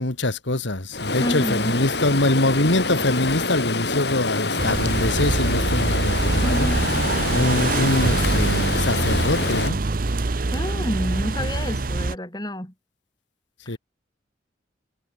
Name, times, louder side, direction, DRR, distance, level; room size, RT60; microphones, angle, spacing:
voice 1, 0.0-6.7 7.3-9.8 13.7-13.8, left 2 dB, 75° left, 2.3 m, -24 dB
Stream, 0.9-9.7, left 3 dB, 60° left, 5.2 m, -26 dB
voice 2, 1.2-1.8 6.4-6.9 10.5-12.7 13.7-13.8, equal, 20° left, 5.5 m, -29 dB
sound 1, 4.6-12.1, right 2 dB, 45° right, 0.8 m, -24 dB
head